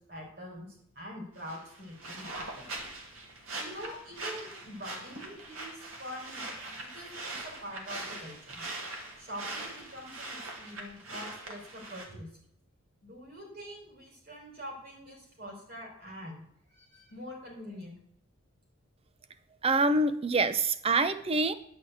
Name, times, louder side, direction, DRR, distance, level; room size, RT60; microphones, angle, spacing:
voice 1, 0.1-2.7 3.6-8.6 9.2-12.3 13.0-16.4 16.7-17.9, equal, 50° right, 0 dB, 4.0 m, -45 dB
sound 1, 1.4-12.1, right 2 dB, 80° right, 2.2 m, -42 dB
voice 2, 19.6-21.5, right 3 dB, 30° right, 11 dB, 0.6 m, -26 dB
10.5 x 5.1 x 7.9 m, 0.70 s
head